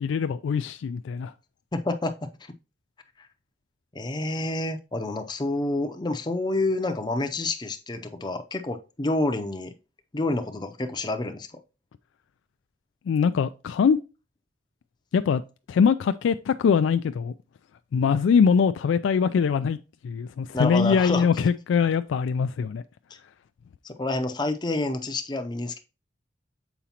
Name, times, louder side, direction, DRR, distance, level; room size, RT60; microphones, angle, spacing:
voice 1, 0.0-1.3 13.1-14.0 15.1-15.4 15.7-17.3 17.9-19.8 20.0-22.8, left 6 dB, 90° left, 0.3 m, -22 dB
voice 2, 1.7-2.3 3.9-9.7 10.1-11.5 20.5-21.3 23.8-25.8, left 2 dB, 25° left, 0.5 m, -28 dB
7.0 x 4.9 x 2.9 m
head